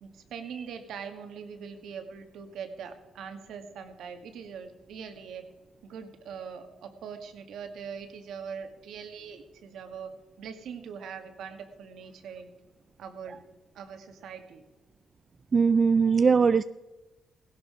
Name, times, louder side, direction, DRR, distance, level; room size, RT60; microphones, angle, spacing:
voice 1, 0.0-5.4 5.8-10.1 10.4-12.6 13.0-13.4 13.7-14.6, right 6 dB, 75° right, 6 dB, 1.8 m, -42 dB
voice 2, 15.5-16.6, right 5 dB, 40° right, 13 dB, 0.4 m, -20 dB
16.5 x 11.5 x 4.9 m, 1.1 s
cardioid pair, 80°, 0 cm